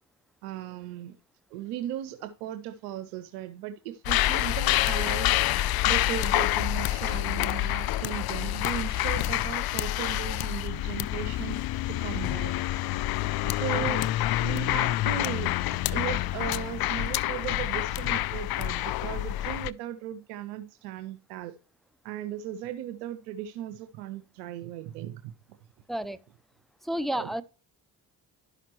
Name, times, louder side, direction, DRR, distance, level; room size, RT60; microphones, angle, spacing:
voice 1, 0.4-1.2 1.5-5.3 5.8-12.5 13.4-14.1 14.4-15.6 15.9-21.6 22.0-25.3 27.1-27.3, right 11 dB, 85° right, 0.6 m, -37 dB
sound 1, 4.0-19.7, left 15 dB, 50° left, 0.5 m, -27 dB
voice 2, 26.8-27.4, right 1 dB, ahead, 0.5 m, -30 dB
11.5 x 5.8 x 3.1 m
hypercardioid pair, 45°, 48 cm